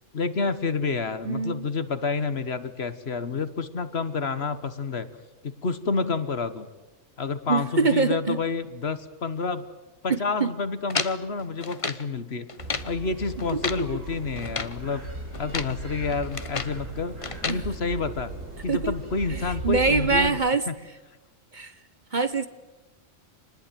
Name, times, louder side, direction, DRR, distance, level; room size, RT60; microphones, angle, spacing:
voice 1, 0.1-5.1 5.4-6.7 7.2-9.6 10.0-12.5 12.8-15.1 15.4-17.2 17.4-18.3 18.6-20.4 20.7-20.8, left 4 dB, 55° left, 12 dB, 1.5 m, -29 dB
voice 2, 1.3-1.7 7.5-8.4 10.1-10.5 13.5-13.9 17.5-17.6 18.7-18.9 19.3-20.7 21.5-21.7 22.1-22.5, right 4 dB, 40° right, 12 dB, 1.0 m, -24 dB
sound 1, 10.9-12.1 12.5-12.9 13.4-13.9 14.4-14.8 15.3-15.8 16.1-16.8 17.2-17.6, left 4 dB, 30° left, 0.9 m, -32 dB
sound 2, 12.6-20.3, right 2 dB, 80° right, 5.3 m, -37 dB
26.5 x 20.0 x 9.2 m, 1.1 s
omnidirectional pair, 1.3 m